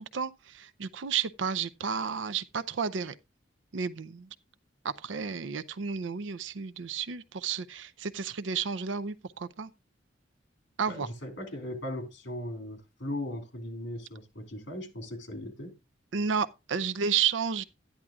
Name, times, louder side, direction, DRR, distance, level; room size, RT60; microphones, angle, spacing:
voice 1, 0.0-3.1 3.7-4.3 4.8-9.7 10.8-11.1 16.1-17.6, right 6 dB, 85° right, 0.6 m, -32 dB
voice 2, 10.9-15.8, left 1 dB, 70° left, 2.5 m, -38 dB
12.0 x 10.0 x 2.4 m
head